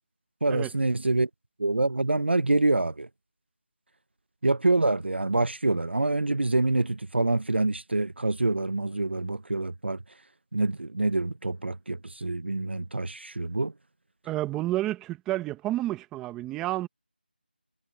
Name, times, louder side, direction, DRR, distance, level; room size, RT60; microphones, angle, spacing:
voice 1, 0.4-1.3 1.6-3.1 4.4-10.0 10.5-13.7, right 2 dB, 80° right, 0.9 m, -26 dB
voice 2, 14.2-16.9, right 15 dB, 5° right, 1.1 m, -30 dB
figure-of-eight pair, 170°, 6 cm